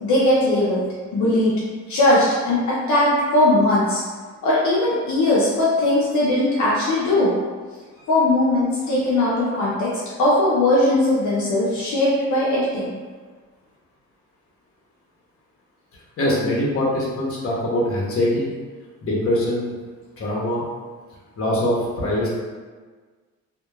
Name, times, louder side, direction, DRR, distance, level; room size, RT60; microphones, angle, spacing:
voice 1, 0.0-1.5 1.9-4.0 4.4-7.3 8.1-12.9, left 1 dB, 70° left, -7 dB, 0.7 m, -19 dB
voice 2, 16.2-18.5 19.0-19.7 20.2-20.7 21.4-22.3, left 1 dB, 50° left, -5 dB, 0.9 m, -22 dB
2.8 x 2.2 x 2.3 m, 1.4 s
cardioid pair, 90°, 30 cm